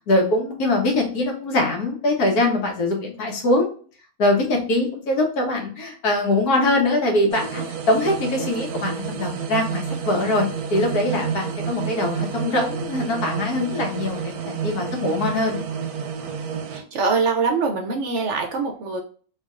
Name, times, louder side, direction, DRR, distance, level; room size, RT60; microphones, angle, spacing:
voice 1, 0.1-3.7 4.2-15.6, left 1 dB, 85° left, 1 dB, 1.5 m, -22 dB
sound 1, 7.3-16.8, right 6 dB, 90° right, 1.1 m, -30 dB
voice 2, 16.7-19.0, right 4 dB, 65° right, 4 dB, 0.8 m, -23 dB
3.4 x 3.3 x 2.4 m, 0.43 s
omnidirectional pair, 1.6 m